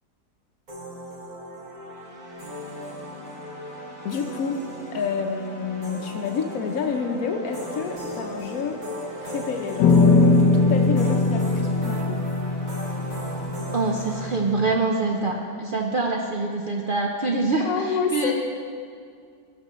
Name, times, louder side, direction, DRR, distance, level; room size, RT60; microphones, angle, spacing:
sound 1, 0.7-14.4, equal, 55° right, 3.1 m, -37 dB
voice 1, 4.0-4.6 4.9-8.8 9.2-12.2 17.6-18.3, left 5 dB, 65° left, 4 dB, 1.0 m, -28 dB
sound 2, 9.8-14.8, left 3 dB, 85° left, 1.2 m, -21 dB
voice 2, 13.7-18.3, right 3 dB, 85° right, 0 dB, 0.4 m, -25 dB
18.0 x 6.7 x 3.0 m, 2.2 s
omnidirectional pair, 1.8 m